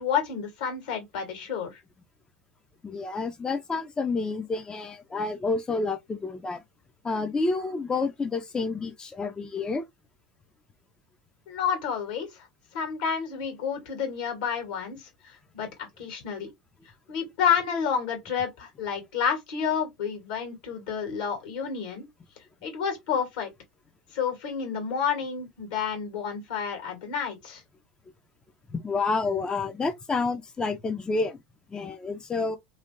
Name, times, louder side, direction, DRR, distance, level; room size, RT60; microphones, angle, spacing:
voice 1, 0.0-1.8 11.5-12.5 12.7-16.5 17.1-22.1 22.6-23.5 24.1-27.6, left 7 dB, 70° left, 1.8 m, -30 dB
voice 2, 2.8-6.6 7.0-9.9 28.7-31.4 31.7-32.6, left 3 dB, 20° left, 0.5 m, -29 dB
3.2 x 2.8 x 2.6 m
hypercardioid pair, 85°, 4 cm